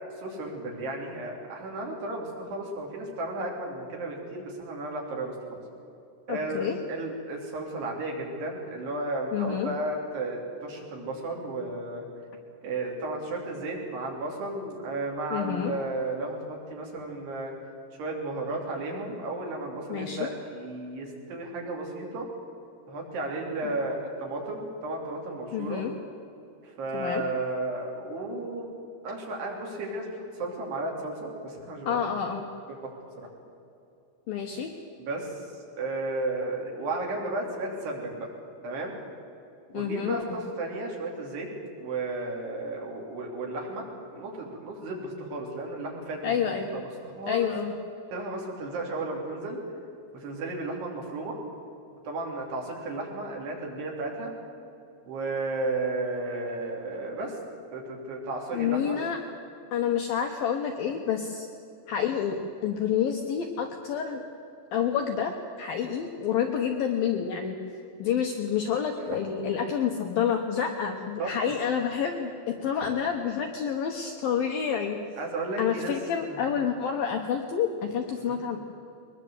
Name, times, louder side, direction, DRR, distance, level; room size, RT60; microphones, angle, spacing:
voice 1, 0.2-5.6 6.3-12.1 12.6-17.5 18.0-22.3 22.9-25.8 26.6-28.8 29.0-32.1 32.7-32.8 33.2-33.3 35.0-38.3 38.6-38.9 39.7-41.5 41.8-47.5 48.1-49.6 50.1-51.4 52.1-54.3 55.1-57.4 57.7-59.0 69.0-69.2 71.2-71.4 72.8-72.9 75.2-75.9 76.2-76.4 78.2-78.4, right 2 dB, 55° right, -1 dB, 5.3 m, -34 dB
voice 2, 6.3-6.8 9.3-9.7 15.3-15.7 19.9-20.2 23.6-23.7 25.5-25.9 26.9-27.2 31.9-32.5 34.3-34.7 39.7-40.4 46.2-46.7 47.3-47.7 58.5-59.2 59.7-61.5 61.9-64.2 64.7-67.6 68.0-75.0 75.6-78.6, left 8 dB, 75° left, 3 dB, 2.2 m, -28 dB
22.0 x 20.5 x 8.0 m, 2.7 s
omnidirectional pair, 5.8 m